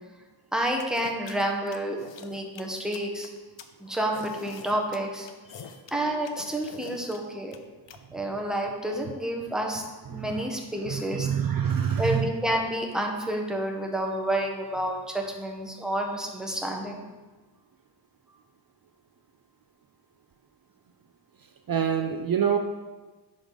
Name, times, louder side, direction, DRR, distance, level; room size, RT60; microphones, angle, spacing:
voice 1, 0.5-3.3 3.8-7.5 8.1-9.8 10.1-11.3 12.0-17.0, right 1 dB, ahead, 0 dB, 1.2 m, -29 dB
sound 1, 0.8-8.0, left 7 dB, 80° left, 0.7 m, -44 dB
voice 2, 10.9-12.3 21.7-22.6, right 8 dB, 55° right, 5 dB, 0.5 m, -26 dB
9.7 x 5.0 x 4.0 m, 1.3 s
wide cardioid pair, 85°, 43 cm